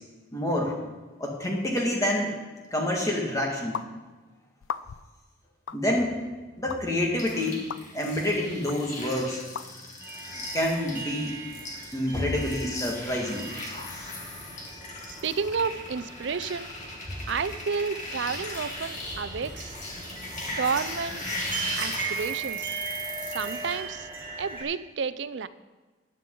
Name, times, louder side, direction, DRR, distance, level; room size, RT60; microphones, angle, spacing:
voice 1, 0.3-0.7 1.2-2.3 2.7-3.8 5.7-6.2 6.6-7.6 7.9-9.4 10.5-11.4 11.9-13.5, left 1 dB, 15° left, -1 dB, 1.8 m, -27 dB
sound 1, 3.7-3.9 4.6-5.1 5.7-5.8 6.7-6.8 7.7-7.8 8.7-8.8 9.6-9.7, left 7 dB, 70° left, 0.4 m, -35 dB
sound 2, 7.2-23.8, left 2 dB, 35° left, 2.0 m, -38 dB
sound 3, 10.0-24.6, right 5 dB, 10° right, 1.9 m, -39 dB
voice 2, 15.0-16.7 17.3-19.7 20.5-21.2 21.8-22.7 23.3-24.1 24.4-25.5, right 5 dB, 60° right, 15 dB, 0.4 m, -31 dB
13.5 x 10.5 x 3.8 m, 1.3 s
head